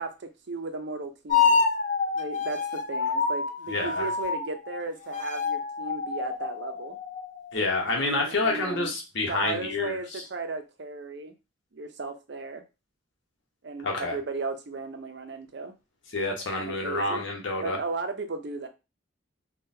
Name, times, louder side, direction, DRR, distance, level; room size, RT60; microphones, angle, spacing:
voice 1, 0.0-1.6 2.1-7.0 7.8-8.9 9.2-11.3 11.7-12.6 13.6-15.7 16.6-17.3 17.6-18.7, right 3 dB, 60° right, 0.5 m, -35 dB
sound 1, 1.3-4.8 5.1-7.5, left 5 dB, 40° left, 0.3 m, -27 dB
voice 2, 3.7-4.1 7.5-10.2 13.8-14.2 16.1-17.8, left 2 dB, 70° left, 1.0 m, -28 dB
3.6 x 2.3 x 2.7 m
head